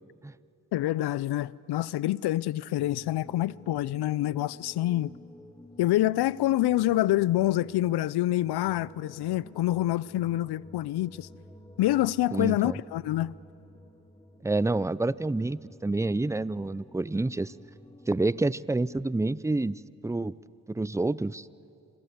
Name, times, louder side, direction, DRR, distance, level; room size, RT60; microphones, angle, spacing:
voice 1, 0.7-5.1 5.8-11.3 11.8-13.3, left 15 dB, 75° left, 0.6 m, -26 dB
sound 1, 2.8-18.5, left 1 dB, 10° left, 2.7 m, -52 dB
voice 2, 12.3-12.8 14.4-17.5 18.1-20.3 20.7-21.5, right 2 dB, 10° right, 0.5 m, -28 dB
26.5 x 22.0 x 8.1 m
supercardioid pair, 45°, 39 cm